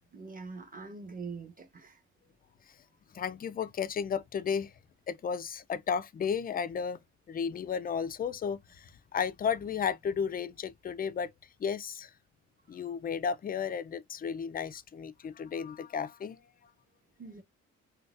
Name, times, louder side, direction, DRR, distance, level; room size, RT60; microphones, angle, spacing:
voice 1, 0.1-2.0 17.2-17.4, right 4 dB, 30° right, 1.0 m, -43 dB
voice 2, 3.1-4.7 5.1-7.0 7.3-11.3 11.6-12.1 12.7-16.4, left 7 dB, 30° left, 0.4 m, -33 dB
3.9 x 2.2 x 2.4 m
cardioid pair, 90°, 30 cm